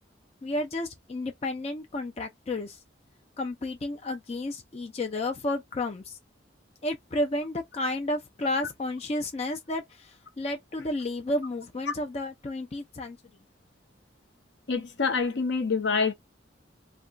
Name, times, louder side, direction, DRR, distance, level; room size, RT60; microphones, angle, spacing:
voice 1, 0.4-2.8 3.4-6.2 6.8-13.2, left 1 dB, 35° left, 0.4 m, -32 dB
voice 2, 14.7-16.1, left 5 dB, 65° left, 0.7 m, -26 dB
2.3 x 2.2 x 3.7 m
head